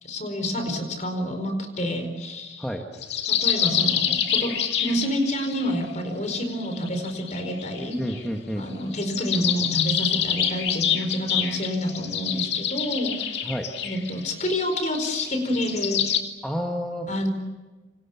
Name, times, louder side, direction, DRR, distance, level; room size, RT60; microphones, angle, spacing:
voice 1, 0.0-2.6 3.4-8.0 8.6-13.5 13.8-16.0 17.1-17.3, equal, 40° left, 7 dB, 4.7 m, -28 dB
sound 1, 3.0-5.7 6.5-8.2 8.9-16.2, left 9 dB, 60° left, 2.5 m, -27 dB
voice 2, 8.0-8.7 13.4-13.7 16.4-17.1, equal, 5° left, 1 dB, 1.9 m, -29 dB
29.5 x 27.0 x 7.2 m, 1.2 s
head